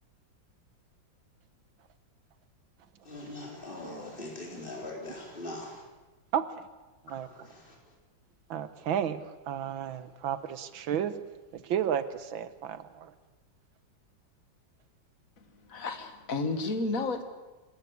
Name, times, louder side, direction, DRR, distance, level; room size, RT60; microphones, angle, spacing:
voice 1, 3.1-5.8 7.4-7.7, left 1 dB, 25° left, -1 dB, 4.6 m, -41 dB
voice 2, 7.0-7.5 8.5-11.1 11.5-13.1, right 9 dB, 90° right, 12 dB, 1.9 m, -32 dB
voice 3, 15.7-17.2, left 3 dB, 45° left, 7 dB, 2.2 m, -31 dB
25.5 x 13.5 x 9.7 m, 1.2 s
omnidirectional pair, 2.1 m